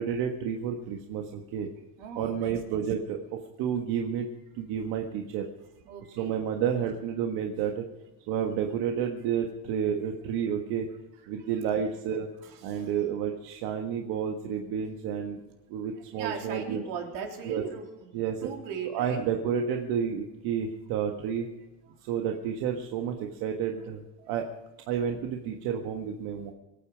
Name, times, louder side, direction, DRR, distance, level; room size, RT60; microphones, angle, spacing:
voice 1, 0.0-1.7 2.2-3.2 3.6-4.3 4.5-5.5 6.1-7.9 8.3-10.9 11.3-12.3 12.6-15.4 15.7-16.8 17.5-17.6 18.1-18.5 18.8-21.5 22.0-24.0 24.3-24.5 24.9-26.5, right 8 dB, 65° right, 3 dB, 1.6 m, -30 dB
voice 2, 2.0-2.8 5.9-6.4 12.4-12.6 16.1-18.1 18.4-19.3, right 7 dB, 80° right, 2 dB, 3.7 m, -38 dB
24.0 x 9.1 x 5.1 m, 1.1 s
cardioid pair, 155°, 40 cm